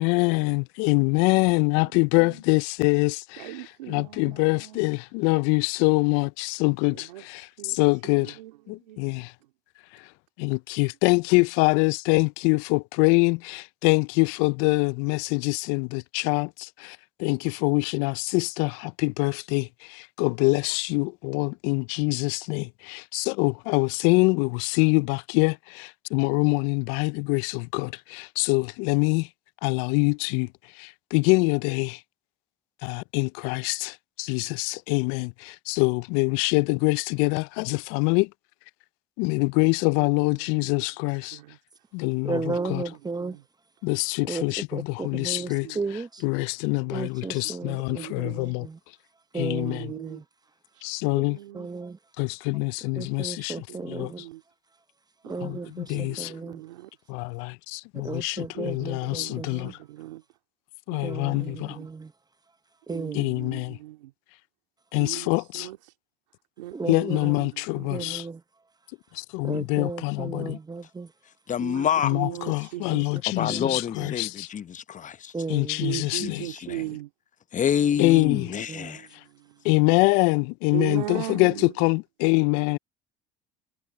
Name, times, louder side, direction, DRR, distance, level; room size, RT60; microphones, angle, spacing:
voice 1, 0.0-3.5 3.9-8.4 8.7-9.3 9.9-10.1 10.4-29.3 29.6-30.5 30.7-32.0 32.8-38.3 39.2-41.4 41.9-42.4 42.7-42.8 43.8-45.7 46.2-48.7 49.4-49.8 50.8-51.4 52.2-53.5 53.9-54.1 55.4-56.3 57.1-59.7 60.9-61.8 63.1-63.8 64.9-65.7 66.9-68.2 69.1-70.6 72.0-74.5 75.5-76.5 78.0-78.5 79.6-82.8, left 29 dB, 70° left, 0.4 m, -25 dB
voice 2, 1.8-2.4 3.4-4.9 6.9-7.3 7.6-7.8 8.0-9.3 40.0-40.6 41.0-41.6 42.6-42.7 43.2-43.4 45.2-45.8 47.0-47.4 47.6-48.5 49.6-50.2 50.7-51.7 53.7-54.4 55.2-56.9 58.5-60.2 60.9-61.9 62.9-64.1 65.0-65.9 66.6-68.2 71.6-73.1 75.8-77.1 78.0-79.6 80.7-81.7, right 16 dB, 90° right, 2.3 m, -39 dB
voice 3, 42.2-43.4 44.2-44.5 44.7-46.2 46.9-48.8 49.3-50.2 51.5-52.0 53.0-54.2 55.2-56.6 57.9-59.8 61.0-62.1 62.9-63.3 66.7-67.4 67.9-68.4 69.4-71.1 72.2-72.3 72.9-73.0 73.5-74.1 75.3-76.1 78.7-79.0, right 4 dB, 20° right, 0.9 m, -35 dB
voice 4, 71.5-72.2 73.3-75.3 76.1-76.8 77.5-79.1, left 8 dB, 35° left, 0.8 m, -27 dB
hypercardioid pair, 70°, 21 cm